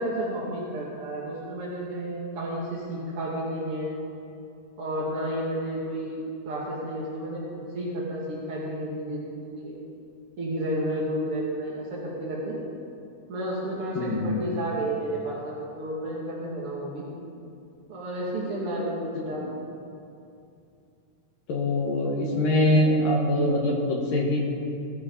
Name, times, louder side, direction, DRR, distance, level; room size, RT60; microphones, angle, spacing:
voice 1, 0.0-3.9 4.8-7.4 7.7-9.7 10.4-12.6 13.3-17.0 17.9-19.4, right 1 dB, 55° right, -6 dB, 1.5 m, -31 dB
voice 2, 13.9-14.4 19.3-19.4 21.5-24.4, left 1 dB, 65° left, -1 dB, 2.3 m, -23 dB
21.0 x 13.5 x 3.9 m, 2.6 s
omnidirectional pair, 6.0 m